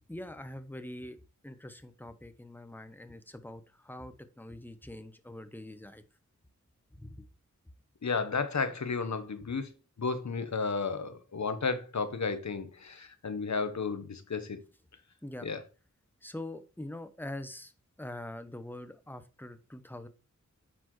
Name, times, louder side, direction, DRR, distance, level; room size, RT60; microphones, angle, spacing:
voice 1, 0.1-1.2 1.4-6.0 6.9-7.3 15.2-15.5 16.2-17.7 18.0-20.1, left 1 dB, 5° left, 1.0 m, -44 dB
voice 2, 8.0-9.7 10.0-14.6 15.4-15.6, left 4 dB, 65° left, 1.1 m, -33 dB
9.6 x 4.3 x 3.1 m
cardioid pair, 45°, 30 cm